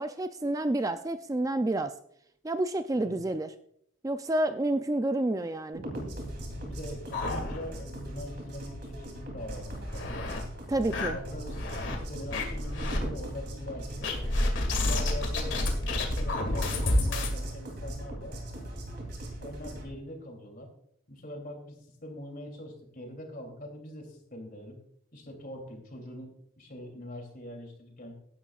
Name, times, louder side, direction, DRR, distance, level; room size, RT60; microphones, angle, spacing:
voice 1, 0.0-1.9 2.4-3.5 4.0-5.8 10.7-11.2, right 1 dB, 15° right, 9 dB, 0.4 m, -29 dB
sound 1, 5.7-19.9, right 1 dB, 55° right, 3.1 m, -39 dB
sound 2, 6.4-8.0 8.3-8.4 8.8-8.9 9.5-10.4 10.9-12.0 12.3-13.0 14.0-17.3, left 2 dB, 65° left, 2.1 m, -30 dB
voice 2, 6.7-10.2 11.0-14.1 14.6-18.4 19.4-20.7 21.1-24.8 25.1-28.2, left 1 dB, 45° left, 2 dB, 2.9 m, -43 dB
16.5 x 11.0 x 2.4 m, 0.68 s
head